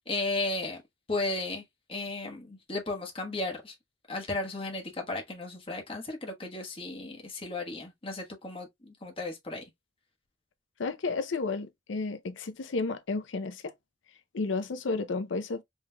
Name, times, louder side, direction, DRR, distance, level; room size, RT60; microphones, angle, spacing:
voice 1, 0.1-0.8 1.1-1.6 1.9-3.7 4.1-9.6, left 2 dB, 30° left, 1.2 m, -34 dB
voice 2, 10.8-13.7 14.3-15.6, left 3 dB, 90° left, 0.6 m, -32 dB
5.5 x 3.2 x 2.2 m
head